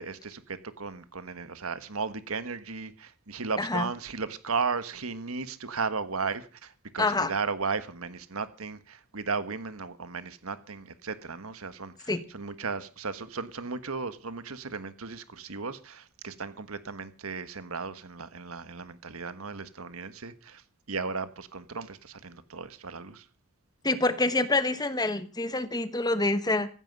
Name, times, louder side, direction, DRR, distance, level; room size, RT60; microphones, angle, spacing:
voice 1, 0.0-20.6 20.9-23.3, right 4 dB, 85° right, 1.4 m, -35 dB
voice 2, 3.6-3.9 7.0-7.3 12.1-12.2 23.8-26.7, left 2 dB, 20° left, 1.2 m, -26 dB
15.5 x 15.5 x 5.3 m
head